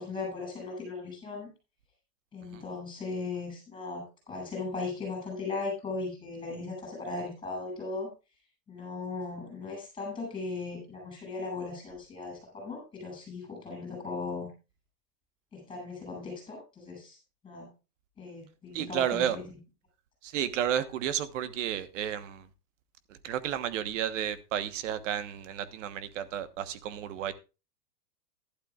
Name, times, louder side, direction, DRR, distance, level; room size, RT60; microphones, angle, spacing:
voice 1, 0.0-1.5 2.3-8.1 8.7-14.5 15.5-17.2 17.4-17.7 18.2-19.5, left 3 dB, 10° left, 7.7 m, -37 dB
voice 2, 18.7-19.4 20.2-22.5 23.2-27.3, right 10 dB, 50° right, 1.3 m, -32 dB
15.0 x 12.0 x 2.4 m
hypercardioid pair, 155°, 47 cm